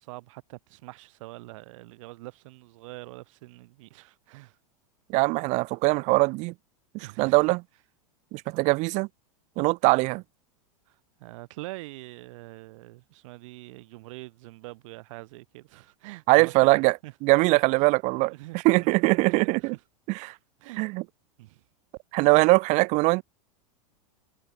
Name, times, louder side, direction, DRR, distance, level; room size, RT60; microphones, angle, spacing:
voice 1, 0.0-4.6 7.0-7.5 10.9-17.1 17.7-17.9 18.3-18.7 19.3-19.8 20.6-20.9 21.4-21.6, right 21 dB, 65° right, 3.8 m, -44 dB
voice 2, 5.1-6.5 7.2-7.6 8.3-9.1 9.6-10.2 16.3-16.9 17.2-18.3 18.6-19.7 20.2-20.3 20.8-21.0 22.1-23.2, right 25 dB, 40° right, 0.4 m, -21 dB
hypercardioid pair, 115°, 18 cm